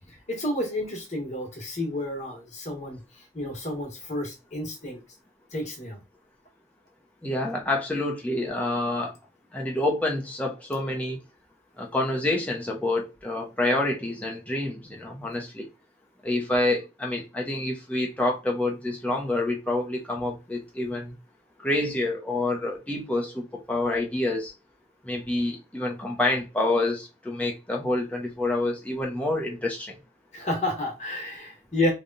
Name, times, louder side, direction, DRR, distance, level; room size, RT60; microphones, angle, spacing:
voice 1, 0.1-5.0 5.5-6.0 30.3-31.9, left 1 dB, 40° left, 1.5 m, -30 dB
voice 2, 7.2-9.1 9.5-11.2 11.8-15.7 16.2-21.1 21.6-24.5 25.0-29.9, left 2 dB, 10° left, 0.9 m, -27 dB
3.4 x 2.4 x 4.0 m
head